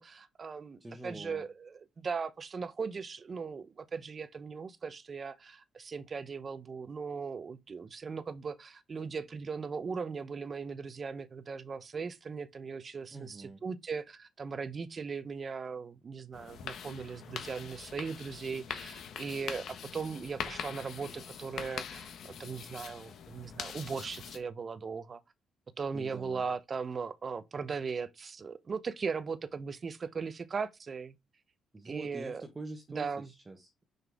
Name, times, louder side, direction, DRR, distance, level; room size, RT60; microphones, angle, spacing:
voice 1, 0.0-1.7 2.0-13.4 13.6-25.2 25.8-31.1 31.8-32.4 33.0-33.3, right 5 dB, 40° right, 0.8 m, -38 dB
voice 2, 0.8-1.5 13.1-13.6 25.9-26.5 31.7-33.9, right 2 dB, 20° right, 1.4 m, -45 dB
sound 1, 16.3-24.4, left 7 dB, 70° left, 1.2 m, -43 dB
5.9 x 5.4 x 3.5 m
cardioid pair, 90°, 0 cm